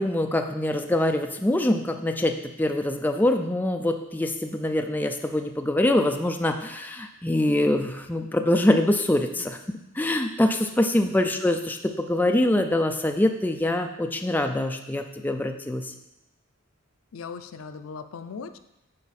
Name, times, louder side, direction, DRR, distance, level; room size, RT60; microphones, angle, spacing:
voice 1, 0.0-15.9, left 1 dB, 10° left, 5 dB, 0.4 m, -24 dB
voice 2, 17.1-18.6, left 5 dB, 80° left, 10 dB, 0.5 m, -38 dB
8.7 x 4.6 x 4.2 m, 0.90 s
head